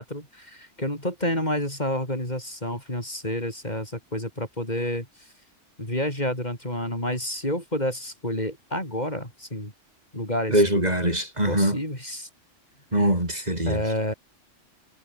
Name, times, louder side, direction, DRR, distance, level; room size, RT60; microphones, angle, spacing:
voice 1, 0.0-5.1 5.8-9.7 10.1-10.6 11.5-12.3 12.9-13.1 13.7-14.1, left 1 dB, 35° left, 7.7 m, -29 dB
voice 2, 10.5-11.8 12.9-13.8, right 1 dB, 35° right, 8.0 m, -22 dB
omnidirectional pair, 1.3 m